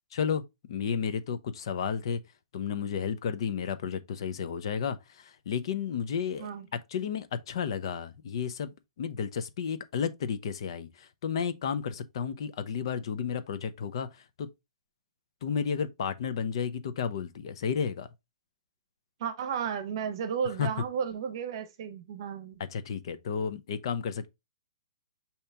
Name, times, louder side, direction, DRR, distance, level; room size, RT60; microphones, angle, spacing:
voice 1, 0.1-2.2 2.5-6.5 6.9-14.5 15.4-18.1 20.6-20.7 22.6-24.3, left 7 dB, 45° left, 0.5 m, -32 dB
voice 2, 19.2-22.6, right 7 dB, 40° right, 0.8 m, -33 dB
5.5 x 2.8 x 3.4 m
hypercardioid pair, 175°, 4 cm